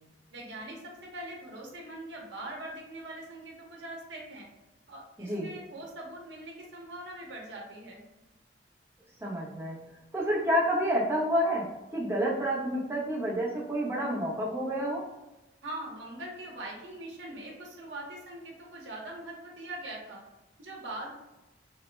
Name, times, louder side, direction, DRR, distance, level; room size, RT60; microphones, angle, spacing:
voice 1, 0.3-4.5 4.9-8.0 15.6-20.2 20.6-21.1, right 1 dB, 75° right, -2 dB, 0.8 m, -42 dB
voice 2, 5.2-5.5 9.2-9.8 10.1-15.1, equal, 15° right, -5 dB, 0.8 m, -29 dB
3.1 x 2.1 x 3.2 m, 1.0 s
head